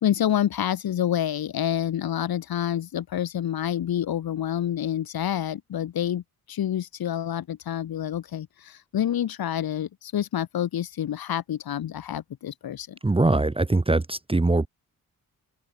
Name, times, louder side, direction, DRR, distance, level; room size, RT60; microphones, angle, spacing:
voice 1, 0.0-6.2 6.5-13.0, left 10 dB, 80° left, 1.3 m, -28 dB
voice 2, 13.0-14.7, right 2 dB, 15° right, 1.0 m, -22 dB
wide cardioid pair, 105°, 36 cm